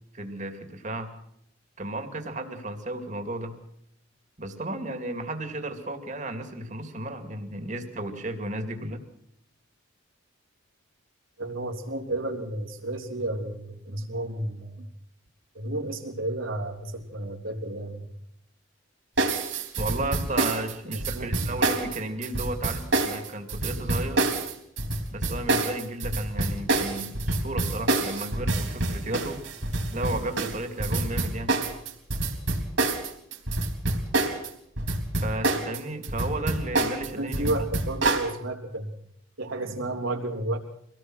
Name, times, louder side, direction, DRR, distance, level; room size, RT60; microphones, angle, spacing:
voice 1, 0.1-1.1 1.8-3.6 4.4-9.0 19.8-24.2 25.1-29.4 29.9-31.6 35.2-37.6, right 2 dB, 35° right, 6 dB, 2.4 m, -34 dB
voice 2, 11.4-14.9 15.5-18.0 20.9-21.5 37.2-38.9 39.4-40.6, right 1 dB, 75° right, 2 dB, 3.5 m, -32 dB
sound 1, 19.2-34.5 34.8-38.3, right 2 dB, 60° right, 3.8 m, -26 dB
25.0 x 18.0 x 6.3 m, 0.72 s
head